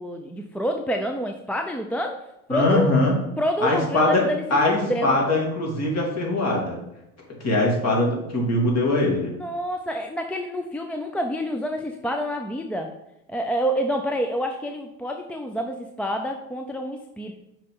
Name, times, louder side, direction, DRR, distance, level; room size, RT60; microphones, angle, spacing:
voice 1, 0.0-2.2 2.5-3.0 3.4-5.2 9.3-12.9 13.3-17.3, equal, 5° left, 4 dB, 0.4 m, -28 dB
voice 2, 2.5-3.2 3.6-4.2 4.5-6.8 7.4-9.3, left 2 dB, 35° left, -1 dB, 2.8 m, -22 dB
6.3 x 4.3 x 5.4 m, 0.85 s
hypercardioid pair, 95°, 42 cm